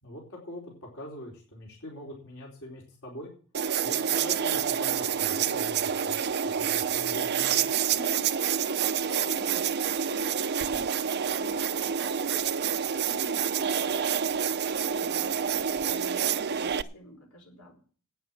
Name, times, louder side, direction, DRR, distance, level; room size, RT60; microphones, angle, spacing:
voice 1, 0.0-3.3 3.8-7.8, left 1 dB, 65° left, -3 dB, 4.3 m, -43 dB
sound 1, 3.5-16.8, right 8 dB, 50° right, 0.6 m, -28 dB
voice 2, 7.9-8.4 8.8-17.8, left 1 dB, 85° left, 1 dB, 4.9 m, -47 dB
11.5 x 9.3 x 7.3 m, 0.42 s
head